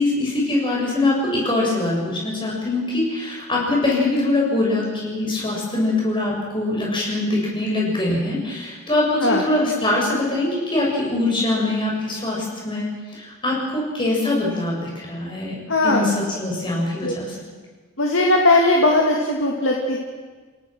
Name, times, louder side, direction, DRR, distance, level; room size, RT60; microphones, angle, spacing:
voice 1, 0.0-17.4, left 2 dB, 20° left, -3 dB, 7.3 m, -23 dB
voice 2, 15.7-16.1 17.0-17.1 18.0-20.0, left 2 dB, 60° left, -1 dB, 2.4 m, -18 dB
30.0 x 18.0 x 6.2 m, 1.4 s
head